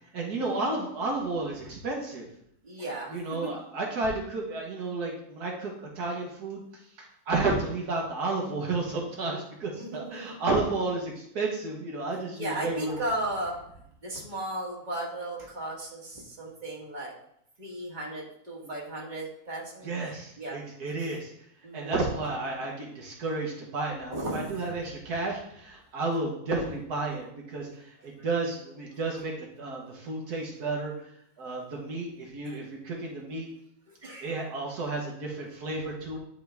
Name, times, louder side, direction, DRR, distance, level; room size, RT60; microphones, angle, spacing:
voice 1, 0.1-2.3 3.1-6.6 7.3-13.0 18.6-18.7 19.8-21.3 21.7-29.3 29.6-30.9 31.4-33.5 34.2-36.2, right 3 dB, 80° right, -1 dB, 1.8 m, -32 dB
voice 2, 2.6-3.5 9.7-10.3 12.4-13.6 14.0-17.1 17.6-19.9 20.4-20.6 21.6-22.0 24.1-24.5 32.4-32.6 34.0-34.3, right 1 dB, 30° right, -3 dB, 1.9 m, -35 dB
10.5 x 3.8 x 3.5 m, 0.73 s
omnidirectional pair, 1.7 m